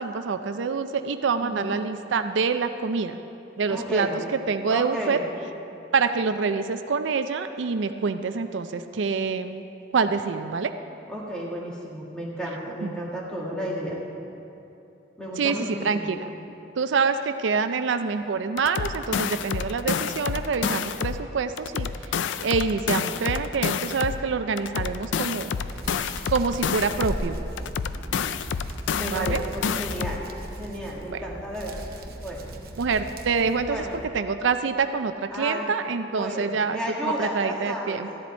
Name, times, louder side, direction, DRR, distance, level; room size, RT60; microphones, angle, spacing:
voice 1, 0.0-3.2 3.6-4.1 4.5-5.2 5.9-9.6 9.9-10.7 12.8-12.9 15.4-15.6 15.8-16.3 16.8-21.9 22.4-25.6 26.3-27.4 29.1-29.4 31.1-31.2 32.8-33.8 34.1-38.1, right 5 dB, 80° right, 9 dB, 0.4 m, -26 dB
voice 2, 1.4-1.7 3.7-4.1 4.7-5.2 11.1-14.0 15.2-16.1 28.9-30.2 30.6-31.9 32.2-32.5 33.7-33.9 35.3-35.7 36.1-38.0, equal, 5° left, -4 dB, 1.7 m, -32 dB
sound 1, 18.6-21.2 21.6-24.2 24.6-27.2 27.6-30.2, left 6 dB, 75° left, 0.4 m, -28 dB
Hands, 25.7-34.1, right 1 dB, 50° right, 0.8 m, -38 dB
14.0 x 10.5 x 4.3 m, 2.8 s
head